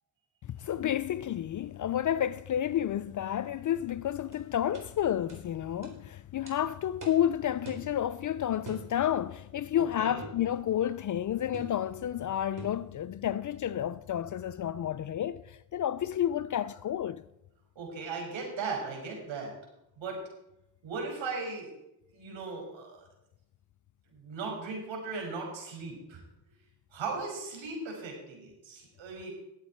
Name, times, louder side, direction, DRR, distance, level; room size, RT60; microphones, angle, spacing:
voice 1, 0.4-17.2, left 10 dB, 40° left, 0.4 m, -30 dB
sound 1, 4.3-4.4 4.7-4.9 5.3-5.4 5.8-6.0 6.5-6.6 7.0-7.2 7.6-7.9 8.6-8.9 10.2-10.4 11.5-11.8 12.6-12.8, right 4 dB, 40° right, 4.0 m, -44 dB
voice 2, 9.8-10.2 17.8-19.5 20.0-20.2 20.8-21.7 22.1-23.0 24.1-26.2 26.9-29.3, right 4 dB, 65° right, 5.8 m, -37 dB
19.5 x 8.1 x 4.4 m
supercardioid pair, 75°, 50 cm